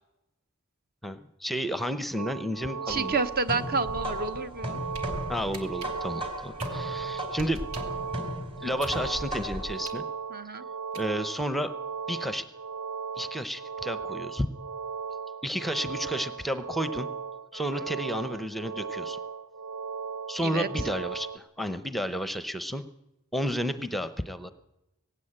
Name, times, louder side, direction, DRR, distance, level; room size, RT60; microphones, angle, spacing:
voice 1, 1.0-3.2 5.3-7.6 8.6-10.0 10.9-11.7 12.1-12.5 13.2-14.5 15.4-17.1 17.5-19.2 20.3-22.8 23.3-24.5, equal, ahead, 12 dB, 0.7 m, -31 dB
sound 1, 2.2-21.4, right 6 dB, 65° right, 0.8 m, -37 dB
sound 2, 2.9-9.8, equal, 25° right, 3.9 m, -36 dB
voice 2, 2.9-4.8 10.3-10.6 17.5-17.6 20.4-20.7, right 4 dB, 45° right, 11 dB, 1.1 m, -29 dB
sound 3, 4.7-5.1 5.5-8.0 8.4-11.5, right 5 dB, 85° right, 2.7 m, -46 dB
18.5 x 16.5 x 8.8 m, 0.93 s
head